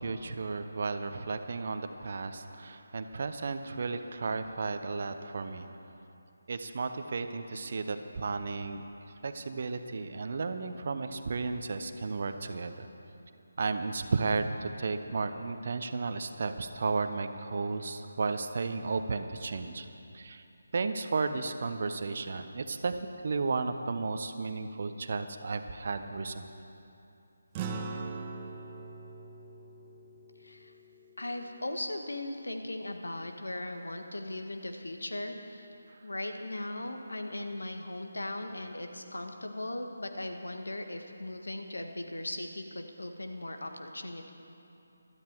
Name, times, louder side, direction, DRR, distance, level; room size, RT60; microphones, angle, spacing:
voice 1, 0.0-5.7 6.5-8.8 9.2-12.9 13.6-19.9 20.1-20.4 20.7-22.9 23.2-26.4, right 4 dB, 50° right, 9 dB, 0.8 m, -33 dB
sound 1, 27.5-32.2, right 4 dB, 20° right, 0.8 m, -42 dB
voice 2, 30.4-30.7 31.2-35.7 36.0-44.3, left 1 dB, 75° left, 5 dB, 1.4 m, -38 dB
16.5 x 12.5 x 4.6 m, 2.8 s
figure-of-eight pair, 155°, 0 cm